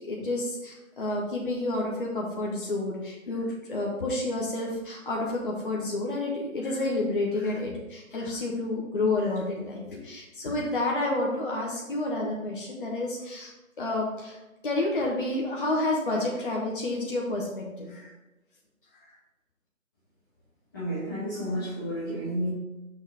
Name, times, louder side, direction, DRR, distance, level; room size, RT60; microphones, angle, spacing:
voice 1, 0.0-13.5 13.8-14.4 14.6-18.1, left 2 dB, 40° left, -2 dB, 1.0 m, -30 dB
voice 2, 20.7-22.5, equal, 15° left, -12 dB, 1.1 m, -31 dB
6.3 x 4.0 x 4.7 m, 1.0 s
figure-of-eight pair, 155°, 41 cm